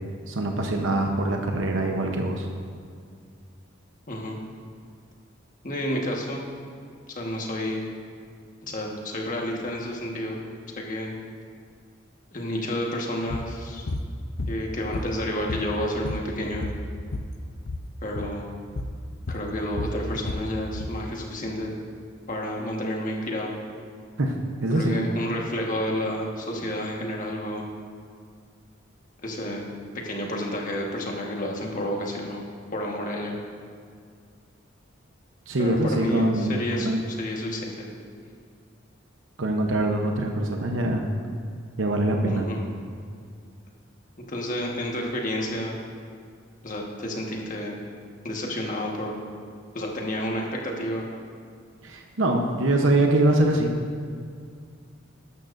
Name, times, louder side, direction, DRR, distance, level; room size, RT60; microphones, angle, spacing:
voice 1, 0.3-2.5 24.2-25.0 35.5-37.0 39.4-41.1 41.8-42.5 51.8-53.7, right 1 dB, 75° right, 2 dB, 0.9 m, -24 dB
voice 2, 4.1-4.4 5.6-6.5 7.1-7.8 8.7-10.4 10.8-11.1 12.3-13.9 14.5-16.7 18.0-18.5 19.3-21.7 22.3-23.5 24.7-27.6 29.2-29.6 29.9-32.4 32.7-33.3 35.6-37.9 42.3-42.6 44.3-45.8 46.6-47.8 48.2-49.2 49.7-51.0, left 1 dB, 40° left, -1 dB, 1.5 m, -30 dB
sound 1, 13.3-13.5 13.9-14.1 14.4-15.2 15.5-17.3 17.6-17.9 18.1-18.3 18.8-19.0 19.3-21.0, left 2 dB, 55° left, 0.6 m, -31 dB
13.0 x 12.0 x 2.6 m, 2.2 s
head